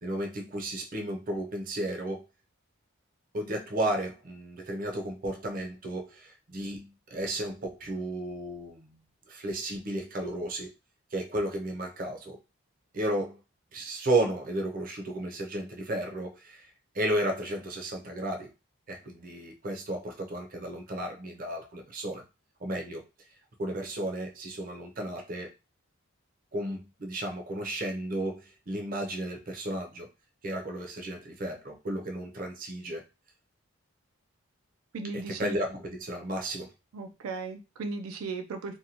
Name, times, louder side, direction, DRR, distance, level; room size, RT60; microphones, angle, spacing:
voice 1, 0.0-2.3 3.3-9.0 9.3-10.7 11.1-12.4 12.9-13.4 13.7-16.7 16.9-18.5 18.9-22.2 22.6-23.0 23.6-25.5 26.5-30.1 30.4-33.0 35.1-36.7, right 1 dB, 40° right, 2 dB, 0.6 m, -33 dB
voice 2, 34.9-35.6 36.9-38.8, right 3 dB, 90° right, 6 dB, 0.4 m, -36 dB
2.6 x 2.2 x 2.8 m, 0.28 s
head